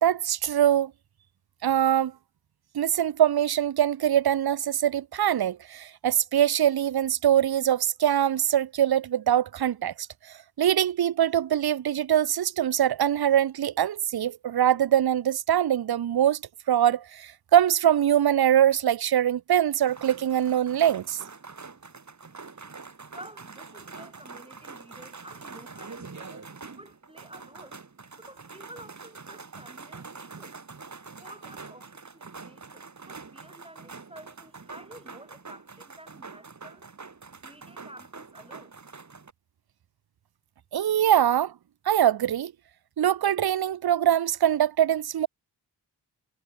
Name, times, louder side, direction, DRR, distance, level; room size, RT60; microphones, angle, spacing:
voice 1, 0.0-0.9 1.6-2.1 2.7-9.9 10.6-16.4 16.7-21.2 40.7-41.5 41.9-42.5 43.0-45.3, right 10 dB, 60° right, 0.7 m, -23 dB
sound 1, 19.8-39.3, right 4 dB, 40° right, 2.2 m, -45 dB
voice 2, 23.1-27.9 28.2-30.6 31.1-36.9 37.4-38.8, right 1 dB, 15° right, 6.6 m, -50 dB
wide cardioid pair, 90°, 41 cm